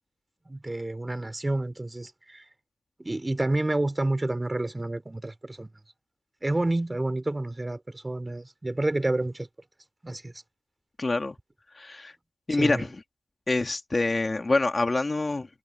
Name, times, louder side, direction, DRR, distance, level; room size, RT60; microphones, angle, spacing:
voice 1, 0.4-2.5 3.0-5.7 6.4-9.5 10.0-10.3 12.5-12.9, right 2 dB, 20° right, 3.5 m, -29 dB
voice 2, 11.0-11.4 11.7-12.1 12.5-12.9 13.5-15.5, left 2 dB, 30° left, 2.5 m, -26 dB
supercardioid pair, 45°, 0 cm